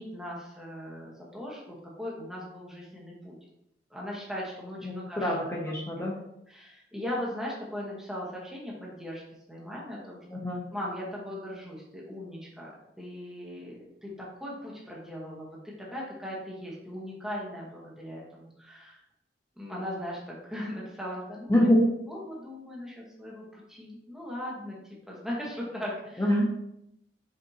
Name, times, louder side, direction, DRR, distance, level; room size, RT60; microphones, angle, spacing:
voice 1, 0.0-3.3 3.9-5.4 6.0-6.1 6.5-9.2 9.5-10.2 10.7-12.7 13.0-19.0 19.6-21.7 22.1-24.7 25.1-26.4, equal, 5° right, -5 dB, 1.1 m, -38 dB
voice 2, 4.8-6.1 10.3-10.6 21.5-21.8 26.2-26.4, left 1 dB, 15° left, -2 dB, 0.7 m, -25 dB
5.4 x 3.5 x 2.8 m, 0.82 s
head